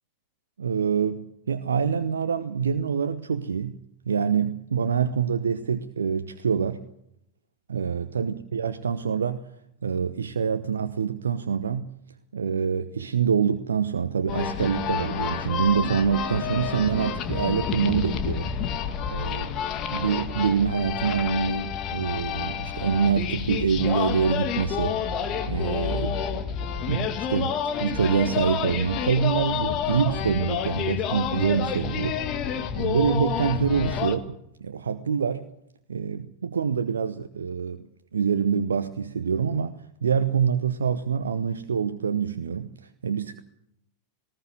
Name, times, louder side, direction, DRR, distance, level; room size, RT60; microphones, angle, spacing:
voice 1, 0.6-3.8 4.1-6.8 7.7-9.4 9.8-11.9 12.3-18.5 19.1-19.5 19.9-25.0 25.5-26.5 26.9-32.2 32.8-35.4 35.9-37.8 38.1-42.7 43.0-43.4, right 6 dB, 70° right, 10 dB, 0.9 m, -26 dB
sound 1, 14.3-34.2, left 8 dB, 35° left, 2.0 m, -29 dB
19.5 x 19.0 x 7.7 m, 0.77 s
figure-of-eight pair, 90°, 0 cm